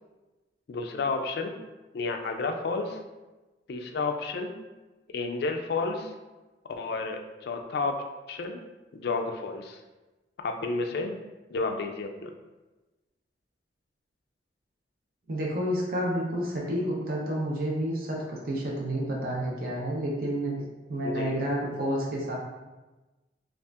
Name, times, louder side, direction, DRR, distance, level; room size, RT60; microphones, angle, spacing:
voice 1, 0.7-1.6 1.9-3.0 3.7-4.6 5.1-6.1 6.8-8.0 8.3-8.6 8.9-9.8 10.4-11.2 11.5-12.3 21.0-21.4, left 3 dB, 60° left, 5 dB, 0.3 m, -31 dB
voice 2, 15.3-20.6 20.9-22.4, equal, 55° right, -3 dB, 0.7 m, -30 dB
5.3 x 2.5 x 2.4 m, 1.2 s
head